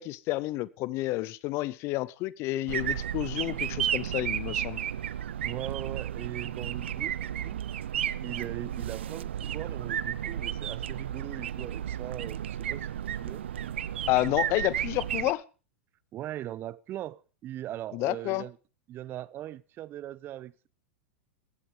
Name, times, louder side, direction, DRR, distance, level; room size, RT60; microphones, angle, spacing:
voice 1, 0.0-4.8 14.1-15.4 17.9-18.4, left 18 dB, 45° left, 0.7 m, -30 dB
sound 1, 2.7-15.3, right 10 dB, 75° right, 0.6 m, -33 dB
voice 2, 5.4-7.6 8.2-12.9 13.2-13.7 16.1-18.6 18.9-20.7, right 13 dB, 35° right, 0.7 m, -40 dB
16.0 x 11.5 x 5.0 m
hypercardioid pair, 95°, 6 cm